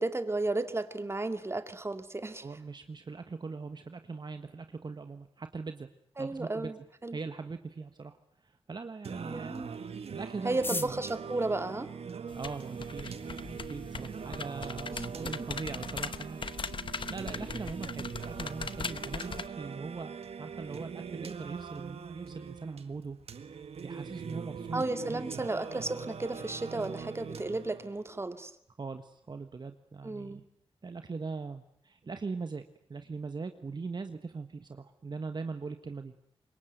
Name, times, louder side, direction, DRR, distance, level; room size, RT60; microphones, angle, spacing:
voice 1, 0.0-2.5 6.2-6.8 7.0-7.2 9.2-9.7 10.4-11.9 14.9-15.1 24.7-28.5 30.0-30.4, right 2 dB, 25° right, 9 dB, 2.2 m, -33 dB
voice 2, 2.4-5.9 6.2-6.7 7.1-8.2 8.4-9.6 10.1-11.0 12.3-16.4 17.1-23.2 23.4-24.8 25.1-25.4 28.8-30.4 30.8-32.6 32.9-36.1, right 4 dB, 45° right, 8 dB, 1.4 m, -41 dB
Singing, 9.0-28.0, right 6 dB, 85° right, 1.7 m, -42 dB
sound 1, 10.5-12.7 13.5-13.6 13.8-13.9 14.2-14.7 15.0-15.1 15.3-15.7 16.0-16.2 16.6-16.9, left 2 dB, 20° left, 1.2 m, -40 dB
sound 2, 12.3-19.5, left 5 dB, 55° left, 1.0 m, -40 dB
26.0 x 22.5 x 9.3 m, 0.69 s
wide cardioid pair, 90°, 10 cm